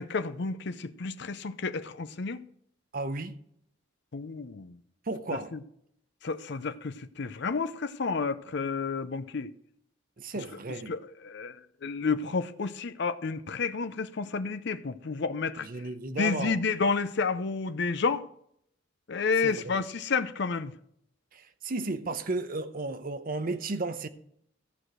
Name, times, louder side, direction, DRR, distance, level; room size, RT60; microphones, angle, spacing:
voice 1, 0.0-2.4 4.1-4.8 5.5-5.6 6.2-9.5 10.9-15.7 16.2-18.2 19.1-20.7, left 4 dB, 55° left, 0.6 m, -30 dB
voice 2, 2.9-3.4 5.1-5.6 10.2-10.9 15.6-16.6 19.4-19.8 21.3-24.1, right 2 dB, 45° right, 0.7 m, -34 dB
14.5 x 4.9 x 6.1 m
head